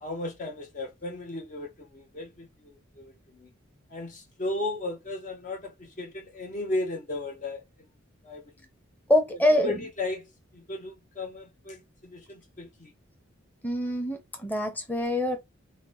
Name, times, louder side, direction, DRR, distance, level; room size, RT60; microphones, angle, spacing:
voice 1, 0.0-3.5 3.9-7.6 8.2-8.4 9.5-10.3 10.5-12.9, left 2 dB, 40° left, 0.6 m, -35 dB
voice 2, 9.1-9.7 13.6-15.4, left 1 dB, 10° left, 0.8 m, -25 dB
4.3 x 2.0 x 3.0 m
head